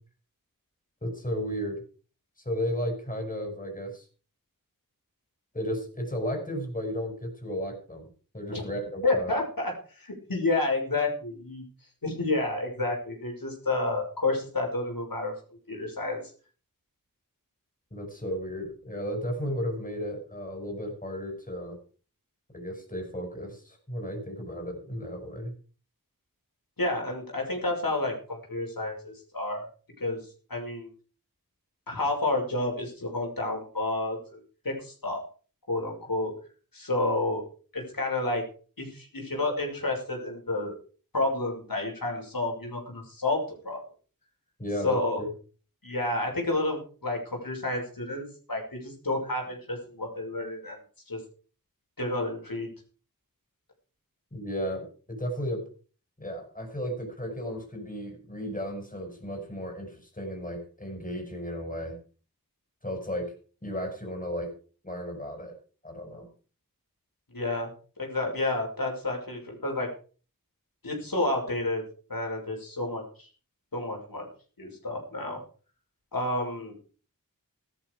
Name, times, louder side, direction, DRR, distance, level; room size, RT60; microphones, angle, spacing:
voice 1, 1.0-1.8 2.5-4.0 5.5-8.1 8.3-9.3 17.9-21.8 22.5-25.5 44.6-45.3 54.3-55.6 56.2-61.9 62.8-63.3 63.6-64.5 64.8-65.5 65.8-66.3, equal, 25° left, 3 dB, 5.7 m, -34 dB
voice 2, 9.0-11.7 12.0-15.4 15.7-16.3 26.8-29.7 30.0-30.9 31.9-35.2 35.7-36.3 36.7-37.4 37.7-38.4 38.8-40.8 41.1-43.8 44.8-45.2 45.8-50.8 51.1-51.2 52.0-52.7 67.3-67.7 68.0-69.9 70.8-71.8 72.1-73.3 73.7-74.3 74.6-75.4 76.1-76.7, left 2 dB, 75° left, 0 dB, 6.2 m, -30 dB
15.5 x 13.0 x 5.0 m, 0.39 s
wide cardioid pair, 60°, 35 cm